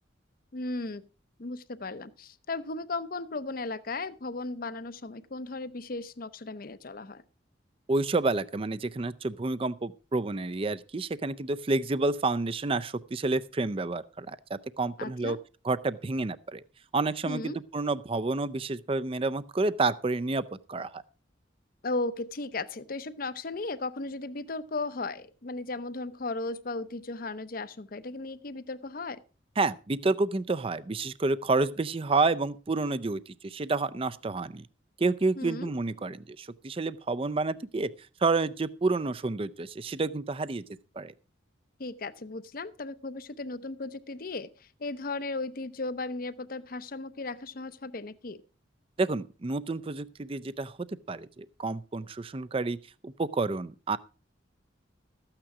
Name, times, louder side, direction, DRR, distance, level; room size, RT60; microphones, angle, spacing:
voice 1, 0.5-1.1 1.4-7.2 15.0-15.4 17.2-17.6 21.8-29.2 35.4-35.7 41.8-48.4, left 3 dB, 50° left, 0.7 m, -36 dB
voice 2, 7.9-15.4 15.6-16.6 16.9-20.4 20.7-21.0 29.6-34.7 35.0-37.9 38.2-40.6 41.0-41.1 49.0-52.8 53.0-54.0, right 3 dB, 30° right, 0.5 m, -29 dB
13.5 x 8.9 x 4.9 m
head